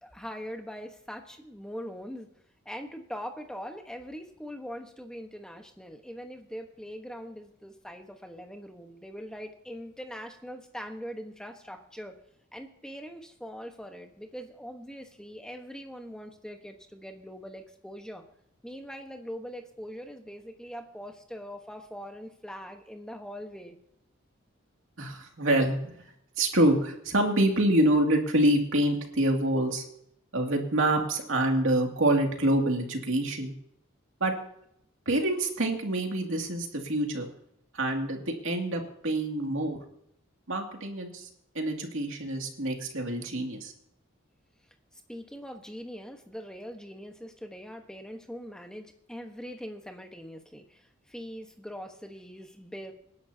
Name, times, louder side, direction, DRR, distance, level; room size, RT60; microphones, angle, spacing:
voice 1, 0.0-2.3 2.6-12.2 12.5-18.2 18.6-23.8 44.9-52.9, equal, 5° left, 4 dB, 1.2 m, -42 dB
voice 2, 25.0-25.9 26.4-29.8 30.3-33.5 34.2-34.3 35.1-37.3 37.7-39.8 40.5-41.3 41.5-43.7, right 1 dB, 80° right, 2 dB, 2.4 m, -26 dB
26.5 x 11.0 x 2.8 m, 0.74 s
head